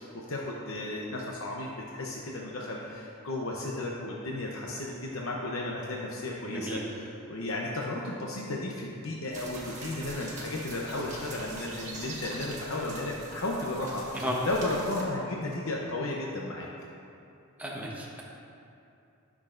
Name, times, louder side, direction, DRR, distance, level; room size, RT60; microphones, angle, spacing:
voice 1, 0.0-16.7, left 2 dB, 75° left, -2 dB, 0.8 m, -34 dB
voice 2, 6.5-6.8 14.1-14.4 17.6-18.2, equal, 5° right, -4 dB, 1.1 m, -34 dB
sound 1, 9.3-15.0, right 2 dB, 35° right, 1.5 m, -43 dB
16.0 x 6.3 x 2.6 m, 2.7 s
head